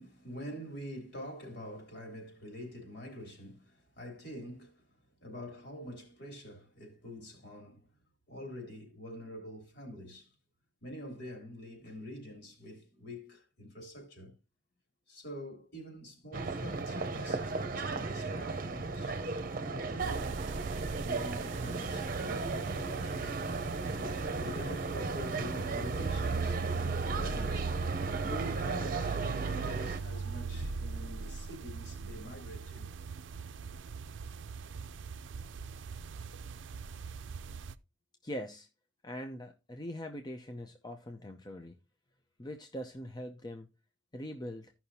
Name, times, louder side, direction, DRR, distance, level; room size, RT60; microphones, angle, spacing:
voice 1, 0.0-4.9 5.2-7.9 8.3-10.3 10.8-14.4 15.1-19.2 19.7-20.4 21.0-23.4 24.0-27.7 28.2-32.9 33.6-33.7, equal, 60° left, 3.3 m, -46 dB
sound 1, 16.3-30.0, right 3 dB, 50° right, 0.8 m, -35 dB
sound 2, 20.0-37.7, right 5 dB, 75° right, 0.5 m, -40 dB
Wind instrument woodwind instrument, 27.1-31.6, left 4 dB, 85° left, 2.9 m, -57 dB
voice 2, 38.2-38.7 39.0-41.8 42.4-43.7 44.1-44.7, equal, 20° left, 0.6 m, -42 dB
15.0 x 5.8 x 2.8 m
head